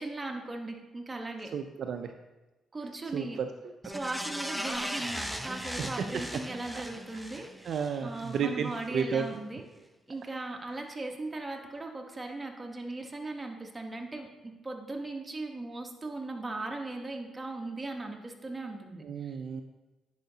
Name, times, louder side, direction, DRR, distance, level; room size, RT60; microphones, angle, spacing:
voice 1, 0.0-1.5 2.7-3.4 3.9-7.7 8.0-9.6 10.1-19.4, right 2 dB, 20° right, 2 dB, 1.1 m, -38 dB
voice 2, 1.5-2.1 3.1-3.5 5.8-5.9 6.7-6.8 7.6-9.3 19.0-19.6, right 7 dB, 65° right, 6 dB, 0.4 m, -32 dB
sound 1, 3.8-8.4 8.8-8.9, equal, ahead, 0.6 m, -38 dB
10.5 x 4.9 x 2.8 m, 1.1 s
cardioid pair, 90°, 0 cm